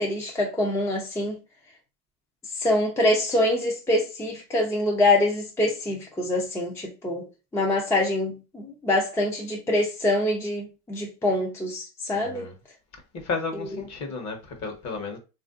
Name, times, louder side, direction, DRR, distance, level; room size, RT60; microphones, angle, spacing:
voice 1, 0.0-1.4 2.5-7.3 7.5-12.5 13.6-13.7, left 1 dB, 5° left, 0.4 m, -25 dB
voice 2, 12.1-12.5 13.2-15.2, left 4 dB, 40° left, 1.0 m, -33 dB
3.2 x 2.5 x 2.4 m
supercardioid pair, 105°, 44 cm